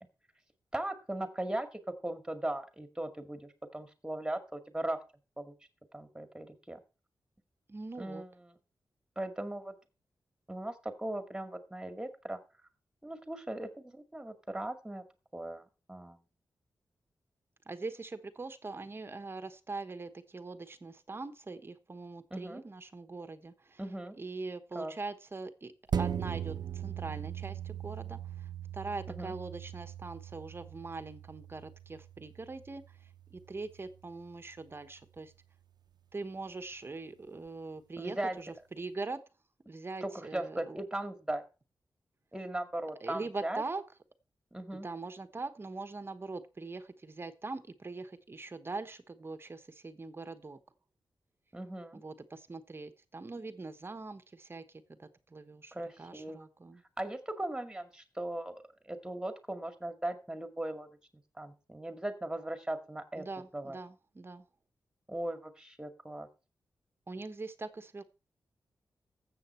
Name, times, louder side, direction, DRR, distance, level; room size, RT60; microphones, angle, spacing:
voice 1, 0.7-5.0 5.4-5.5 5.9-6.8 8.0-8.6 9.2-9.7 10.5-12.4 13.0-15.0 15.3-16.2 22.3-22.6 23.8-24.2 24.7-24.9 29.1-29.3 38.0-38.4 40.0-41.4 42.3-43.6 44.5-44.9 51.5-52.0 55.7-56.4 57.0-60.9 61.4-63.3 63.5-63.8 65.1-66.3, right 1 dB, 10° right, 8 dB, 2.1 m, -38 dB
voice 2, 7.7-8.2 17.7-23.8 24.2-35.3 36.1-39.2 39.7-40.8 43.0-43.8 44.7-50.6 51.9-56.8 63.1-64.4 67.1-68.0, right 3 dB, 30° right, 10 dB, 1.2 m, -42 dB
sound 1, 25.9-34.7 35.2-35.3, right 8 dB, 70° right, 0.8 m, -40 dB
13.0 x 7.9 x 4.4 m, 0.31 s
wide cardioid pair, 110°, 8 cm